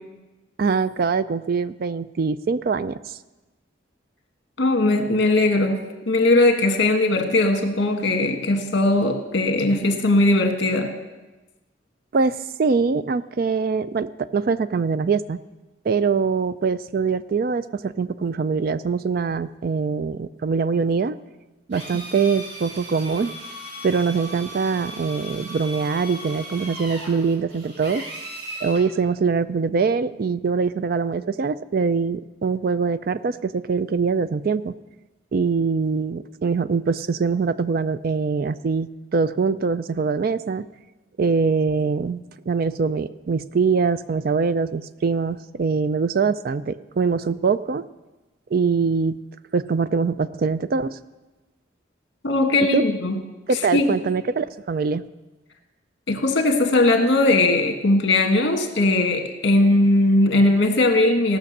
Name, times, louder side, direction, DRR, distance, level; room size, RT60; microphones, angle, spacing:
voice 1, 0.6-3.2 12.1-15.4 15.8-21.2 21.7-23.3 23.8-28.0 28.6-34.7 35.3-40.7 41.2-47.8 48.5-49.2 49.5-51.0 52.7-52.8 53.5-55.0, right 5 dB, 50° right, 14 dB, 0.3 m, -23 dB
voice 2, 4.6-10.9 52.2-53.2 53.7-53.9 56.1-61.4, left 2 dB, 60° left, 4 dB, 1.5 m, -19 dB
Drill, 21.7-28.9, right 1 dB, 65° right, 3.6 m, -37 dB
16.5 x 6.3 x 6.5 m, 1.1 s
head